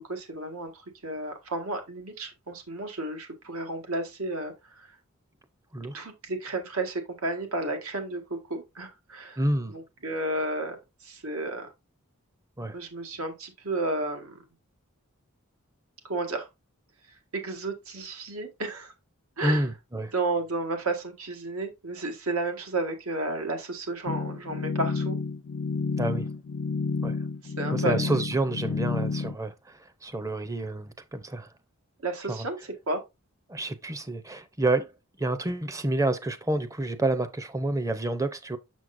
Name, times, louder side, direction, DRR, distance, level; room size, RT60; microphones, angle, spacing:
voice 1, 0.1-4.9 5.9-9.4 9.7-10.8 11.0-11.7 12.7-14.4 16.0-16.5 17.3-18.9 19.4-19.6 20.1-25.2 27.4-28.2 32.0-33.0, right 2 dB, 80° right, 1.6 m, -32 dB
voice 2, 9.4-9.7 12.6-12.8 19.4-20.1 26.0-26.3 27.0-27.2 27.7-31.5 32.3-32.5 33.5-34.9 35.2-38.6, right 2 dB, 15° right, 0.6 m, -29 dB
sound 1, 24.1-29.3, left 4 dB, 50° left, 0.3 m, -30 dB
6.7 x 6.2 x 2.6 m
head